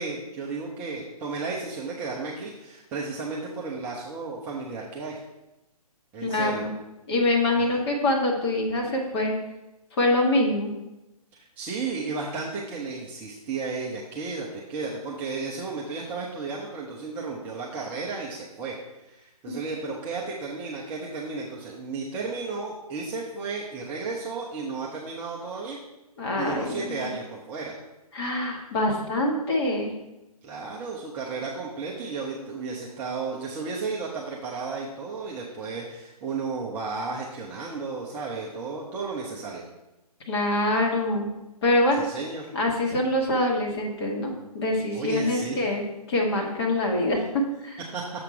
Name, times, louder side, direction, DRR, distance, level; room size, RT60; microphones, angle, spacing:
voice 1, 0.0-5.2 6.1-6.6 7.6-7.7 11.3-25.8 26.4-27.7 30.4-39.7 42.0-42.5 44.9-45.7 47.9-48.0, right 4 dB, 10° right, -4 dB, 0.4 m, -33 dB
voice 2, 6.2-6.7 7.1-9.3 10.0-10.7 19.5-19.6 26.2-27.1 28.1-29.9 40.3-41.3 41.6-42.0 42.5-47.2 47.6-47.8, left 1 dB, 40° left, -1 dB, 1.9 m, -25 dB
6.8 x 5.8 x 4.6 m, 0.98 s
figure-of-eight pair, 145°, 20 cm